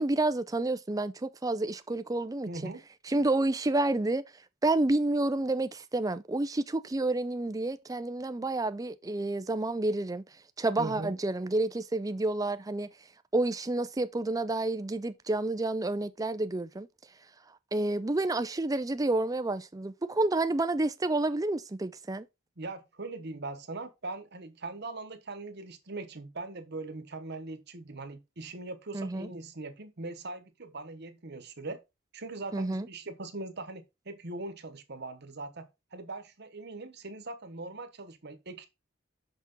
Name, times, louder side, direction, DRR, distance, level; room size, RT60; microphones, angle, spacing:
voice 1, 0.0-2.7 3.1-4.2 4.6-10.2 10.6-12.9 13.3-16.9 17.7-22.3 28.9-29.3 32.5-32.9, right 2 dB, 20° right, 0.5 m, -29 dB
voice 2, 2.4-2.8 10.8-11.2 22.6-31.8 32.1-38.7, right 2 dB, 55° right, 1.2 m, -41 dB
6.0 x 5.9 x 4.0 m
head